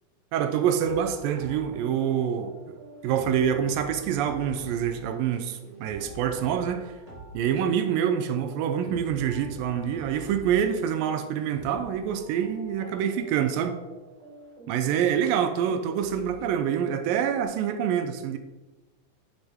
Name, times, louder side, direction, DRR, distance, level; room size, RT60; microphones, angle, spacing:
voice 1, 0.3-2.8 3.0-6.9 7.3-13.8 14.7-18.4, right 8 dB, 80° right, 8 dB, 2.3 m, -26 dB
sound 1, 0.8-17.4, right 2 dB, 40° right, 1.0 m, -45 dB
8.6 x 7.8 x 3.6 m, 1.1 s
omnidirectional pair, 4.1 m